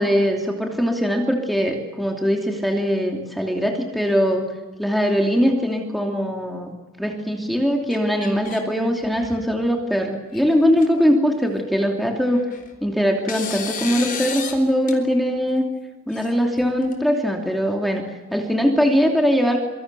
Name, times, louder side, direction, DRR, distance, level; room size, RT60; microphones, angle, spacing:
voice 1, 0.0-4.5 4.8-12.5 12.8-15.6 16.1-18.0 18.3-19.6, equal, ahead, 1 dB, 2.7 m, -21 dB
sound 1, 7.9-8.6 9.0-9.5 10.3-10.4 10.8-10.9 12.2-12.8 13.3-14.6 14.9-15.0 16.1-16.9, left 6 dB, 40° left, 4.3 m, -32 dB
27.0 x 24.5 x 6.9 m, 1.2 s
head